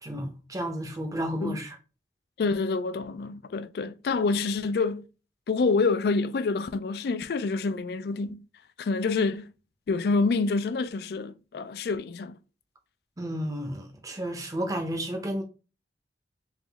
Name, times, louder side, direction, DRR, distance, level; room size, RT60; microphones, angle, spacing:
voice 1, 0.0-1.8 13.2-15.4, equal, 20° right, 0.6 m, -32 dB
voice 2, 2.4-5.1 5.5-8.4 8.8-9.5 9.9-12.4, left 4 dB, 60° left, 0.3 m, -27 dB
3.5 x 3.0 x 3.4 m
head